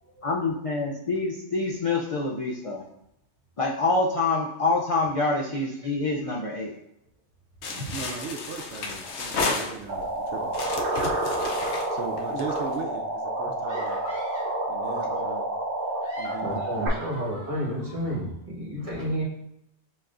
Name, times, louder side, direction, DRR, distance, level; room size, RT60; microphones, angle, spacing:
voice 1, 0.2-2.8 3.6-6.7, left 3 dB, 50° left, -2 dB, 0.4 m, -26 dB
sound 1, 7.6-10.1 10.5-12.7, left 3 dB, 75° left, 0.9 m, -32 dB
voice 2, 7.9-10.5 11.9-14.0 14.7-15.5 16.2-16.9, right 5 dB, 85° right, 3 dB, 0.9 m, -37 dB
sound 2, 9.9-16.9, right 1 dB, 55° right, 1.0 m, -29 dB
sound 3, 13.7-14.6 15.8-18.2, equal, 20° left, 0.8 m, -45 dB
voice 3, 16.4-19.2, equal, 30° right, -4 dB, 1.3 m, -31 dB
6.9 x 3.0 x 2.5 m, 0.80 s
omnidirectional pair, 1.2 m